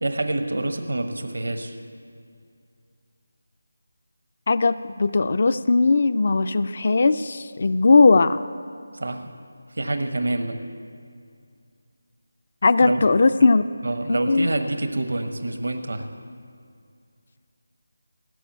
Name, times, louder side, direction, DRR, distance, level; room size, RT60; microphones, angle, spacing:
voice 1, 0.0-1.8 8.9-9.3 9.7-10.6 12.8-13.0 13.8-16.1, right 2 dB, 70° right, 7 dB, 1.1 m, -27 dB
voice 2, 4.5-8.4 12.6-13.6 14.1-14.5, left 3 dB, 45° left, 13 dB, 0.4 m, -18 dB
18.0 x 7.2 x 9.1 m, 2.4 s
figure-of-eight pair, 160°, 0 cm